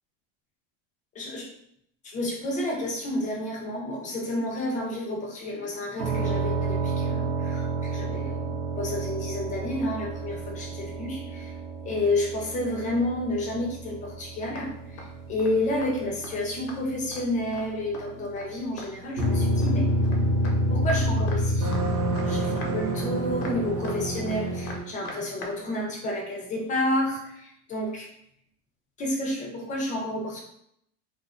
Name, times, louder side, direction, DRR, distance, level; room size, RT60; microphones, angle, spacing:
voice 1, 1.2-1.5 2.0-7.7 7.9-11.5 11.8-19.9 20.7-21.7 22.2-28.1 29.0-30.4, left 1 dB, 20° left, -1 dB, 0.4 m, -30 dB
sound 1, 6.0-19.7, right 5 dB, 85° right, 0.8 m, -34 dB
sound 2, 14.6-14.7 15.0-15.1 15.4-15.5 15.8-16.0 16.2-16.4 16.7-17.2 17.5-17.7 17.9-18.1 18.4-18.5 18.8-18.9 19.2-20.2 20.4-20.6 20.8-21.0 21.3-21.9 22.2-22.3 22.6-22.7 23.0-23.1 23.4-24.0 24.3-24.4 24.7-25.5 25.8-25.9, left 3 dB, 85° left, 0.8 m, -40 dB
sound 3, 19.2-24.8, equal, 40° right, 0.5 m, -25 dB
2.4 x 2.3 x 2.3 m, 0.73 s
supercardioid pair, 135°, 37 cm